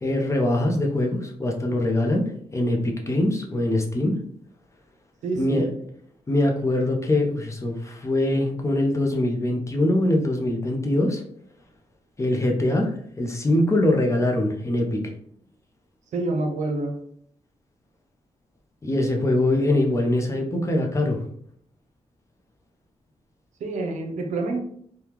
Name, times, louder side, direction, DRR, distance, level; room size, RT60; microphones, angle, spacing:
voice 1, 0.0-4.1 5.4-5.6 6.3-11.2 12.2-12.9 13.2-15.0 18.8-21.2, left 1 dB, 25° left, 1 dB, 0.6 m, -23 dB
voice 2, 5.2-5.7 16.1-17.0 23.6-24.6, right 2 dB, 85° right, 3 dB, 0.6 m, -27 dB
3.5 x 2.2 x 2.9 m, 0.65 s
cardioid pair, 90°, 12 cm